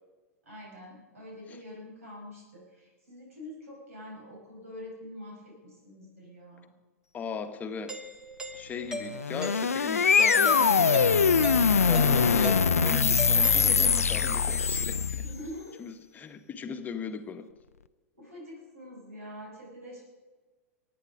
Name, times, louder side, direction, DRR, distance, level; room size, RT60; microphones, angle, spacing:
voice 1, 0.4-6.7 15.1-15.8 18.1-20.0, left 1 dB, 70° right, -2 dB, 5.2 m, -45 dB
voice 2, 7.1-7.9 8.5-15.2 15.8-17.5, left 5 dB, 20° left, 8 dB, 1.3 m, -38 dB
Doorbell, 7.9-14.2, equal, 10° right, 1.4 m, -39 dB
sound 1, 9.1-15.4, left 6 dB, 75° left, 0.5 m, -23 dB
22.5 x 9.7 x 5.1 m, 1.3 s
figure-of-eight pair, 95°, 8 cm